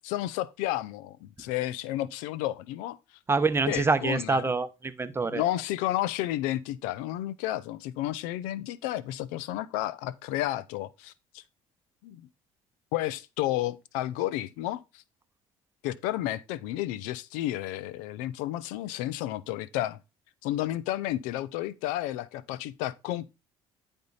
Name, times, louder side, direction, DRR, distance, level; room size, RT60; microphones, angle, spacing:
voice 1, 0.0-3.0 3.7-4.5 5.3-11.4 12.0-12.3 12.9-14.8 15.8-20.0 20.4-23.3, left 14 dB, 85° left, 0.5 m, -31 dB
voice 2, 3.3-5.4, right 3 dB, 20° right, 0.7 m, -26 dB
9.6 x 3.5 x 4.0 m
supercardioid pair, 85°, 13 cm